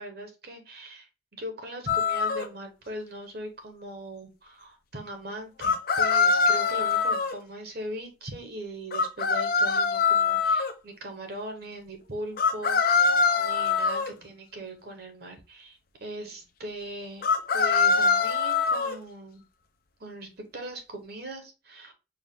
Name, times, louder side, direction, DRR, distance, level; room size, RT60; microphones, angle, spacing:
voice 1, 0.0-17.2 17.5-19.4 20.0-21.9, right 1 dB, 55° right, 5 dB, 1.0 m, -40 dB
sound 1, 1.9-2.5 5.6-7.3 8.9-10.7 12.4-14.1 17.2-19.0, left 5 dB, 50° left, 0.4 m, -23 dB
4.4 x 2.4 x 3.6 m, 0.29 s
head